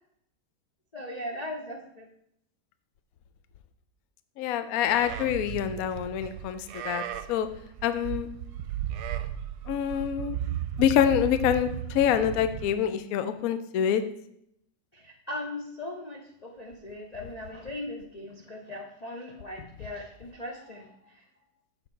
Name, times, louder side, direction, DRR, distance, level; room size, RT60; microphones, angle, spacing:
voice 1, 0.9-2.1 14.9-20.9, left 1 dB, 50° left, -1 dB, 0.5 m, -39 dB
voice 2, 4.4-7.0 7.3-7.5 7.8-8.3 9.7-10.4 10.8-14.0, left 9 dB, 70° left, 10 dB, 0.9 m, -26 dB
Livestock farm animals working animals, 4.9-12.7, right 11 dB, 75° right, 1.1 m, -35 dB
7.1 x 5.8 x 4.4 m, 0.75 s
omnidirectional pair, 1.8 m